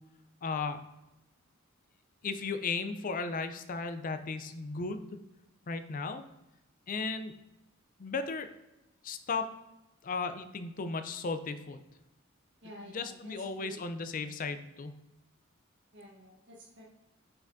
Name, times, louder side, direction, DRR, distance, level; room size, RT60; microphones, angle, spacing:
voice 1, 0.4-0.8 2.2-5.1 5.7-6.2 6.9-7.3 8.0-8.5 9.0-9.5 10.0-11.8 12.6-14.9, left 4 dB, 40° left, 10 dB, 0.5 m, -35 dB
voice 2, 12.6-13.8 15.9-16.8, equal, 60° right, -3 dB, 1.3 m, -51 dB
6.5 x 5.7 x 2.6 m, 0.99 s
head